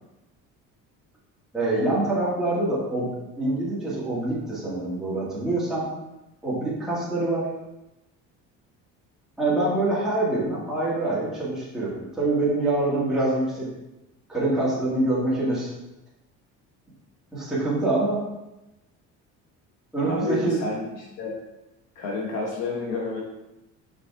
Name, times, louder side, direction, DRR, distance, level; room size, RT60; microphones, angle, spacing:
voice 1, 1.5-3.1 3.4-5.9 6.4-7.5 9.4-13.7 14.3-15.7 17.3-18.2 19.9-20.6, right 2 dB, ahead, -9 dB, 2.0 m, -25 dB
voice 2, 20.0-21.4 21.9-23.2, left 3 dB, 70° left, -2 dB, 1.1 m, -30 dB
5.3 x 5.2 x 3.5 m, 0.95 s
cardioid pair, 145°, 32 cm